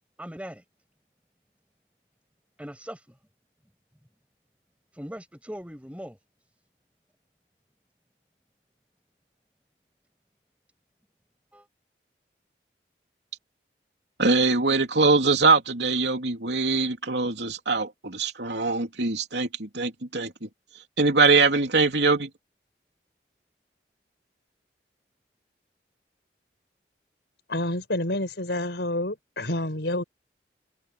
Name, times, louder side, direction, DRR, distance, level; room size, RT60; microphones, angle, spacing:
voice 1, 0.2-0.6 2.6-3.0 5.0-6.2 11.5-11.6, equal, 5° right, 6.4 m, -39 dB
voice 2, 14.2-20.5 21.0-22.3, right 3 dB, 85° right, 3.1 m, -22 dB
voice 3, 27.5-30.0, left 1 dB, 85° left, 5.1 m, -28 dB
head